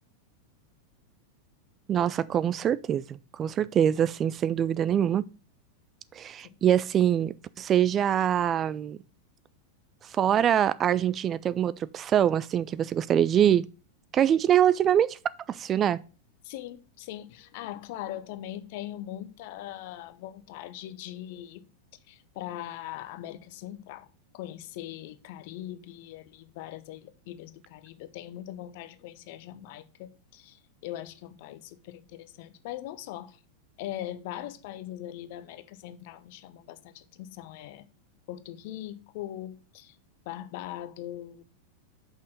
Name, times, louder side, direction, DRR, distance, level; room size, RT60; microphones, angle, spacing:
voice 1, 1.9-5.2 6.1-9.0 10.0-13.6 14.1-15.2 15.5-16.0, right 10 dB, 25° right, 0.3 m, -24 dB
voice 2, 16.4-21.6 22.1-24.1 24.3-33.4 33.8-37.9 38.3-40.0 40.3-41.4, left 13 dB, 50° left, 0.8 m, -41 dB
6.3 x 5.6 x 6.3 m
figure-of-eight pair, 90°, 0 cm